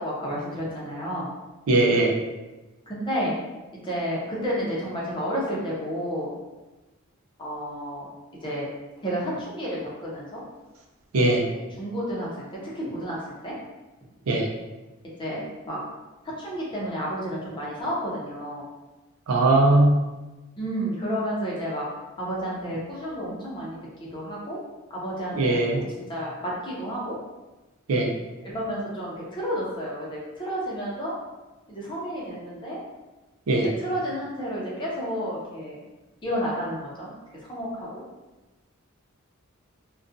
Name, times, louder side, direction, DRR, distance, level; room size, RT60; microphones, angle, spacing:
voice 1, 0.0-1.3 2.9-3.3 3.7-6.3 7.4-8.1 8.4-8.7 9.0-10.4 11.5-13.5 15.2-15.8 16.2-18.7 20.6-21.9 22.2-24.6 24.9-27.1 28.4-31.2 31.7-32.8 33.6-35.8 36.2-38.0, equal, 20° left, -5 dB, 0.7 m, -31 dB
voice 2, 1.7-2.1 11.1-11.4 14.3-14.5 19.3-20.0 25.4-25.8 27.9-28.1 33.5-33.7, right 2 dB, 80° right, 1 dB, 0.4 m, -20 dB
2.4 x 2.2 x 2.5 m, 1.1 s
head